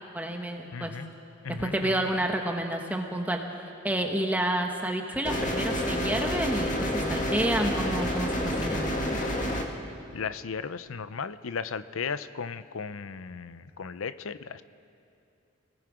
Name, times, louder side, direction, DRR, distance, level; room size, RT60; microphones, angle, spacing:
voice 1, 0.1-0.9 1.5-3.4 3.8-8.3 8.6-8.9, right 1 dB, 10° right, 2 dB, 1.1 m, -29 dB
voice 2, 0.7-1.1 1.4-2.1 10.1-14.6, left 5 dB, 85° left, 14 dB, 0.6 m, -36 dB
sound 1, 5.2-9.6, equal, 40° left, 1.8 m, -29 dB
28.5 x 19.0 x 5.0 m, 2.6 s
head